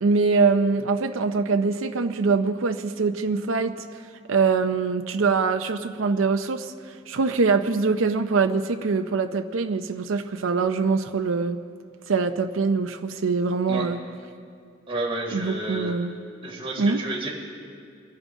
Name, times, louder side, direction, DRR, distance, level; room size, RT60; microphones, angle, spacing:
voice 1, 0.0-3.8 4.3-11.6 12.1-14.0 15.3-16.2 16.8-17.0, right 4 dB, 80° right, 6 dB, 0.6 m, -23 dB
voice 2, 14.9-15.9 16.4-17.3, right 2 dB, 30° right, -4 dB, 3.5 m, -30 dB
25.0 x 10.5 x 3.6 m, 2.3 s
head